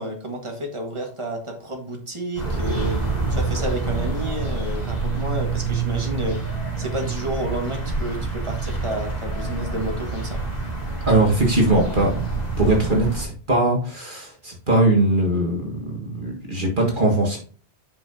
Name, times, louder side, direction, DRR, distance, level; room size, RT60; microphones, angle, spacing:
voice 1, 0.0-3.0 3.3-10.4, right 1 dB, 25° right, 2 dB, 1.8 m, -30 dB
sound 1, 2.4-13.2, right 3 dB, 35° left, 2.7 m, -27 dB
voice 2, 11.1-17.4, right 2 dB, 45° right, -2 dB, 1.9 m, -21 dB
8.7 x 5.7 x 2.8 m, 0.41 s
omnidirectional pair, 1.2 m